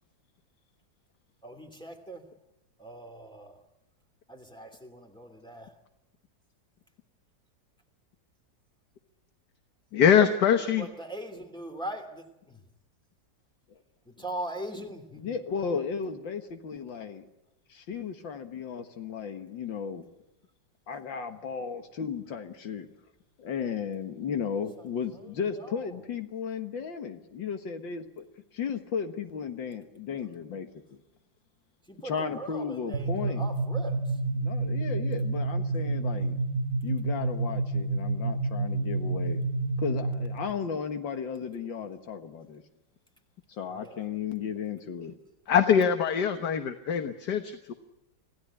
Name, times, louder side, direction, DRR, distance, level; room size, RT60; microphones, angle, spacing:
voice 1, 1.4-2.3 2.8-3.6 4.3-5.7 10.8-12.6 14.0-15.4 24.8-26.0 31.9-34.2 43.7-44.0, right 1 dB, ahead, 3 dB, 2.7 m, -41 dB
voice 2, 9.9-10.9 45.5-47.7, left 8 dB, 65° left, 8 dB, 1.7 m, -23 dB
voice 3, 15.2-17.3 17.7-20.0 20.9-22.9 23.4-28.3 28.5-30.7 32.0-33.5 34.4-36.4 36.8-39.4 39.8-42.6 43.5-45.1, left 6 dB, 85° left, 7 dB, 2.3 m, -35 dB
sound 1, 32.9-40.5, right 3 dB, 40° right, 2.5 m, -29 dB
26.5 x 16.0 x 9.8 m, 0.92 s
omnidirectional pair, 2.0 m